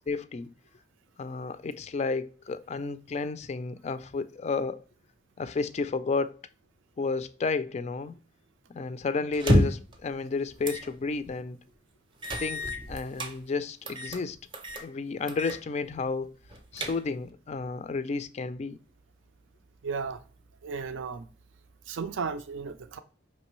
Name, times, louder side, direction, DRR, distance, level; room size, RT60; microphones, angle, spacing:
voice 1, 0.1-0.5 1.2-4.8 5.4-6.4 7.0-8.1 8.7-11.6 12.4-14.4 14.8-16.3 16.7-18.8, left 4 dB, 35° left, 0.3 m, -32 dB
sound 1, 9.3-9.9 10.6-10.9 11.3-11.4 12.2-13.3 13.9-14.2 14.5-14.9 15.3-15.6 15.9-16.0 16.5-17.3, equal, 25° right, 0.6 m, -28 dB
voice 2, 19.8-20.2 20.6-21.3 21.9-23.0, right 5 dB, 75° right, 0.4 m, -34 dB
5.2 x 3.1 x 3.0 m
head